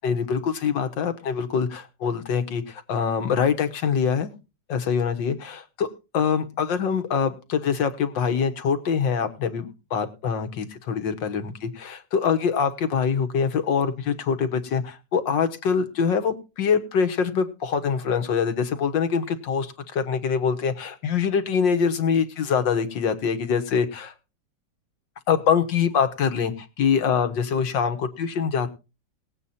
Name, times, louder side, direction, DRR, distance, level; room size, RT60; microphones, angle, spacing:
voice 1, 0.0-4.3 4.7-5.9 6.1-24.1 25.3-28.7, left 6 dB, 85° left, 9 dB, 2.0 m, -24 dB
18.0 x 8.3 x 4.2 m, 0.31 s
omnidirectional pair, 1.9 m